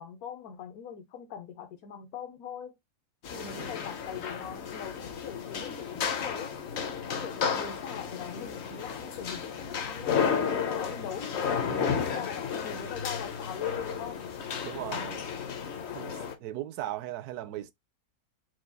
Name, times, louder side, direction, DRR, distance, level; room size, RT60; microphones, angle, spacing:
voice 1, 0.0-2.7 3.3-6.5 7.0-14.2, left 7 dB, 70° left, 1.3 m, -41 dB
sound 1, 3.2-16.4, left 6 dB, 55° left, 0.8 m, -33 dB
voice 2, 3.3-3.8 11.7-12.1 14.6-15.2 15.9-17.7, right 13 dB, 80° right, 1.1 m, -38 dB
4.7 x 2.3 x 3.9 m
omnidirectional pair, 1.7 m